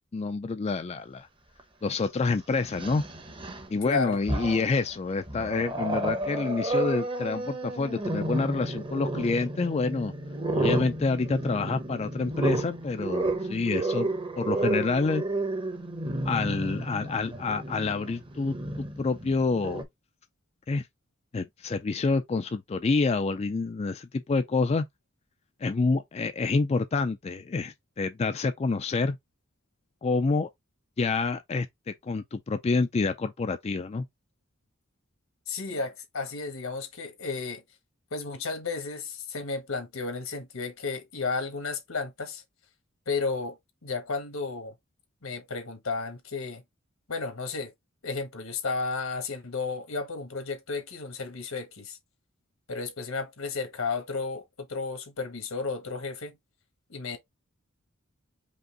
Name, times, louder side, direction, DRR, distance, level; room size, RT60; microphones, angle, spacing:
voice 1, 0.1-1.3 1.8-3.0 3.7-10.1 10.5-14.1 14.4-15.2 16.2-19.9 20.7-20.9 21.3-24.8 25.6-29.2 30.0-30.5 31.0-34.1, left 4 dB, 30° left, 0.4 m, -28 dB
Growling, 1.6-1.7 2.6-3.7 4.1-4.8 5.3-19.8, right 2 dB, 25° right, 0.8 m, -32 dB
voice 2, 3.8-4.2 35.5-37.6 38.1-42.4 43.1-44.7 45.2-46.6 47.1-47.7 48.0-52.0 52.7-56.4 56.9-57.2, left 4 dB, 80° left, 1.4 m, -33 dB
5.3 x 2.5 x 3.7 m
head